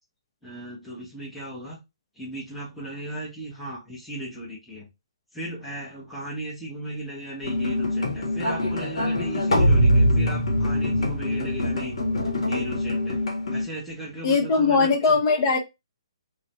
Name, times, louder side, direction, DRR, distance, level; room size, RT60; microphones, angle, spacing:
voice 1, 0.4-1.8 2.1-4.9 5.3-12.0 12.5-15.2, right 1 dB, ahead, 0.8 m, -36 dB
sound 1, 7.4-13.6, left 1 dB, 70° left, 0.9 m, -23 dB
voice 2, 14.2-15.6, left 4 dB, 45° left, 0.7 m, -20 dB
2.5 x 2.1 x 2.9 m
hypercardioid pair, 135°, 3 cm